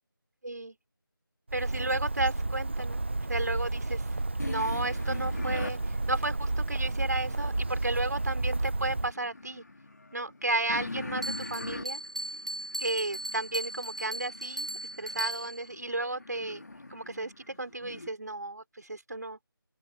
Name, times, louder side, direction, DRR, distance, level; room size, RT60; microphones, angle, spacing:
voice 1, 0.4-0.8 1.5-3.0 3.3-4.0 4.5-9.6 10.1-12.0 12.8-14.7 15.0-16.6 16.9-19.4, right 2 dB, 50° right, 4.7 m, -33 dB
Bird, 1.5-9.1, right 2 dB, 30° right, 1.1 m, -31 dB
sound 1, 4.4-7.7 8.1-18.1, left 2 dB, 50° left, 2.6 m, -43 dB
Bell, 11.2-15.7, right 1 dB, 15° right, 0.6 m, -37 dB
open air
figure-of-eight pair, 175°, 12 cm